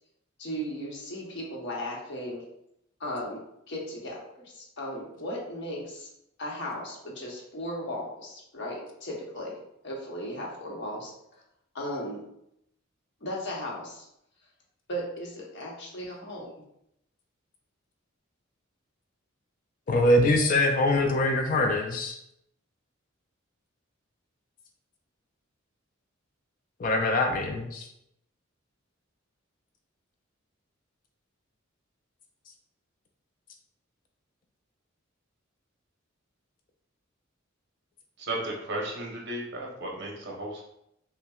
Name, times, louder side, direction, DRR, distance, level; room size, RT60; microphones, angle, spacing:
voice 1, 0.4-2.4 3.0-3.4 3.7-6.1 6.4-9.6 9.8-11.1 11.7-12.2 13.2-14.0 14.9-16.5, equal, 60° left, -3 dB, 1.0 m, -36 dB
voice 2, 19.9-22.2 26.8-27.9, left 1 dB, 40° left, 3 dB, 0.4 m, -23 dB
voice 3, 38.3-40.6, right 1 dB, 55° right, -2 dB, 0.9 m, -34 dB
5.6 x 2.2 x 2.3 m, 0.78 s
head